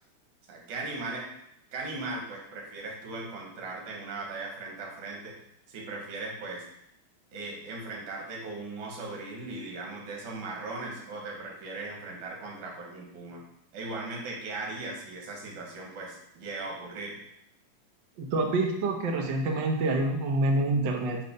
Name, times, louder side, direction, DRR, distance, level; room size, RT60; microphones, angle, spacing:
voice 1, 0.5-1.3 1.7-5.4 5.7-6.7 7.3-13.4 13.7-17.2, right 3 dB, 85° right, -1 dB, 3.0 m, -38 dB
voice 2, 18.2-21.2, right 2 dB, 65° right, 1 dB, 1.1 m, -27 dB
9.4 x 3.2 x 5.2 m, 0.77 s
omnidirectional pair, 3.4 m